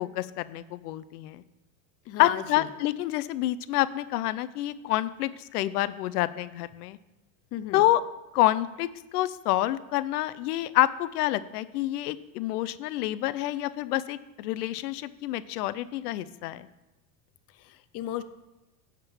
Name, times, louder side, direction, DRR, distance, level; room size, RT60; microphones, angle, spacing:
voice 1, 0.0-1.4 2.2-7.0 7.7-8.0 8.3-8.9 9.1-16.7, left 15 dB, 90° left, 14 dB, 0.6 m, -27 dB
voice 2, 2.1-2.7 7.5-7.8 17.6-18.2, left 12 dB, 35° left, 11 dB, 0.5 m, -34 dB
9.9 x 3.7 x 7.2 m, 1.0 s
supercardioid pair, 125°, 45 cm